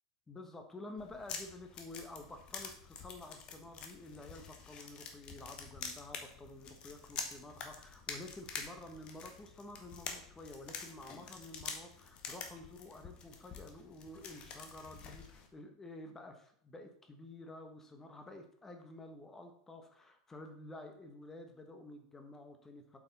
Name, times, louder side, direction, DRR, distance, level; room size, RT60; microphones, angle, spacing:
voice 1, 0.3-23.0, left 2 dB, 15° left, 5 dB, 1.3 m, -50 dB
sound 1, 1.0-15.5, left 6 dB, 35° left, 1.2 m, -47 dB
7.7 x 5.8 x 4.1 m, 0.63 s
figure-of-eight pair, 85°, 3 cm